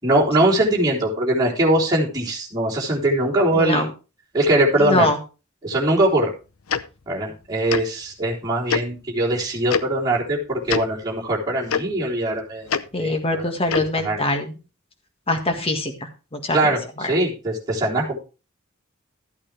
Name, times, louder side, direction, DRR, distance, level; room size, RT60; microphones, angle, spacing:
voice 1, 0.0-3.9 4.3-5.1 5.6-6.3 7.1-12.7 13.0-13.5 14.0-14.2 16.5-18.2, right 1 dB, 20° right, -6 dB, 3.6 m, -21 dB
voice 2, 3.5-3.9 4.8-5.2 12.9-14.5 15.3-15.9 16.3-17.1, left 2 dB, 25° left, 4 dB, 1.8 m, -23 dB
Tick-tock, 6.7-6.8 7.7-7.8 8.7-8.8 9.7-9.8 10.7-10.8 11.7-11.8 12.7-12.8 13.7-13.9, left 6 dB, 75° left, 0.7 m, -22 dB
13.5 x 8.8 x 3.3 m, 0.32 s
head